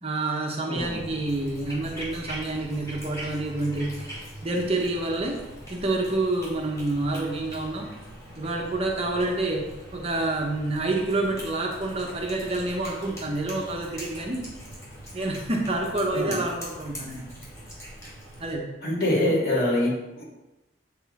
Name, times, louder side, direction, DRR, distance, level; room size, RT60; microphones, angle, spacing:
voice 1, 0.0-4.2 4.4-5.4 5.7-7.9 8.4-9.7 9.9-14.4 15.1-17.3 18.4-18.7, right 2 dB, 30° right, 1 dB, 0.9 m, -28 dB
voice 2, 0.7-1.0 16.1-16.3 18.8-20.2, left 1 dB, 50° left, -6 dB, 2.5 m, -24 dB
Cat, 0.8-18.5, equal, 15° left, 2.3 m, -42 dB
7.7 x 5.3 x 4.1 m, 1.0 s
head